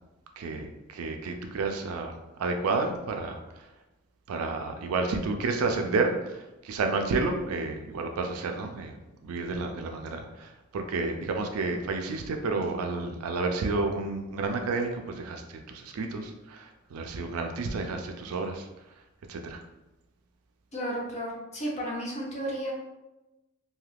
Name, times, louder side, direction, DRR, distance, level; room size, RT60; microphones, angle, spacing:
voice 1, 0.4-3.7 4.3-9.0 9.2-18.7 19.3-19.6, right 3 dB, 85° right, 4 dB, 0.4 m, -31 dB
voice 2, 20.7-22.7, equal, 30° left, -2 dB, 0.7 m, -33 dB
2.7 x 2.3 x 3.3 m, 1.0 s
head